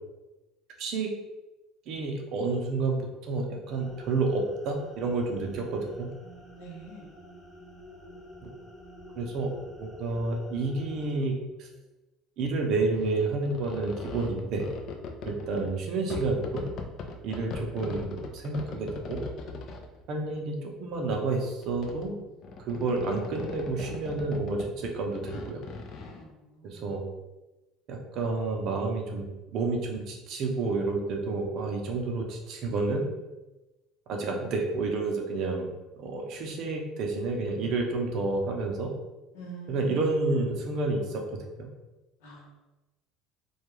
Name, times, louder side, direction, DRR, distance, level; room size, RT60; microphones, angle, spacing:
voice 1, 0.8-1.1 1.9-3.0 3.3-6.1 8.4-8.5 9.1-9.5 9.8-11.3 11.6-11.7 12.4-14.6 15.2-16.6 17.2-19.2 20.1-22.1 22.6-25.6 26.6-27.0 27.9-33.1 34.1-35.7 36.0-38.9 39.7-41.2 41.6-41.7, right 3 dB, 60° right, 2 dB, 0.5 m, -30 dB
sound 1, 3.7-11.2, equal, 5° left, 0.8 m, -49 dB
voice 2, 6.6-7.1 26.2-26.8 39.3-40.0 42.2-42.5, right 2 dB, 90° left, -3 dB, 0.8 m, -45 dB
sound 2, 13.0-15.7 16.1-20.0 20.9-21.3 21.6-22.1 22.4-26.2, left 4 dB, 55° left, 0.4 m, -40 dB
2.3 x 2.2 x 3.0 m, 1.1 s
supercardioid pair, 100°, 0 cm